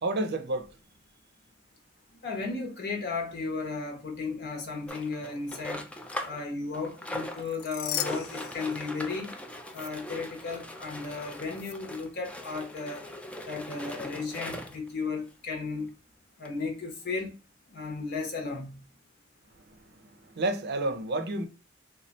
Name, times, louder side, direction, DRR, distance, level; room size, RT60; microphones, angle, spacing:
voice 1, 0.0-0.7 19.7-20.1 20.3-21.5, right 2 dB, 55° right, 0.6 m, -30 dB
voice 2, 2.2-5.9 6.2-9.3 9.7-13.1 13.4-15.9 16.4-17.3 17.7-18.8, left 4 dB, 55° left, 1.0 m, -35 dB
sound 1, 4.9-6.4 6.7-14.9 15.6-15.7 15.9-16.0 16.5-16.6, left 1 dB, 5° left, 0.4 m, -40 dB
sound 2, 7.3-9.3 9.7-9.9 11.5-11.7, left 13 dB, 85° left, 0.3 m, -37 dB
3.2 x 2.3 x 4.0 m
head